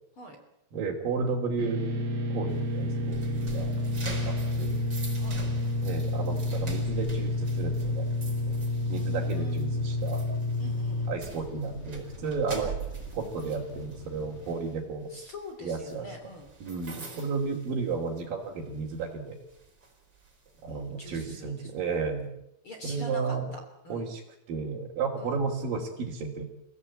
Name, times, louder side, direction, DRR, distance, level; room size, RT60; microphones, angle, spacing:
voice 1, 0.7-1.8 2.3-3.7 4.3-4.9 5.8-8.1 8.9-10.2 11.1-12.7 13.2-15.1 15.6-16.1 16.6-19.4 20.6-22.3 22.8-23.5 23.9-24.2 24.5-26.4, right 4 dB, 60° right, -3 dB, 4.3 m, -33 dB
sound 1, 1.6-11.1, left 2 dB, 90° right, 0.9 m, -29 dB
sound 2, 2.5-18.4 18.7-19.0 19.5-21.2, right 4 dB, 25° right, 4.8 m, -44 dB
sound 3, 3.0-14.6, left 4 dB, 85° left, 5.4 m, -47 dB
voice 2, 8.9-9.7 10.6-11.1 12.5-12.7 15.1-16.5 16.9-17.2 20.7-21.7 22.6-24.1 25.2-25.4, equal, 35° left, 4 dB, 3.9 m, -44 dB
29.5 x 16.5 x 8.6 m, 0.83 s
omnidirectional pair, 4.7 m